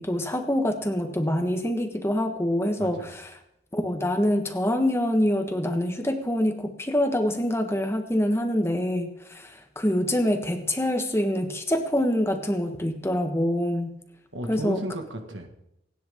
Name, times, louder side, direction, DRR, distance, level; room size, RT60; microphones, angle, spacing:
voice 1, 0.0-3.2 3.7-13.9 14.5-14.8, left 1 dB, 15° left, 6 dB, 1.3 m, -25 dB
voice 2, 2.8-3.1 14.3-15.5, right 1 dB, 75° right, 4 dB, 1.8 m, -34 dB
27.5 x 10.0 x 3.7 m, 0.82 s
head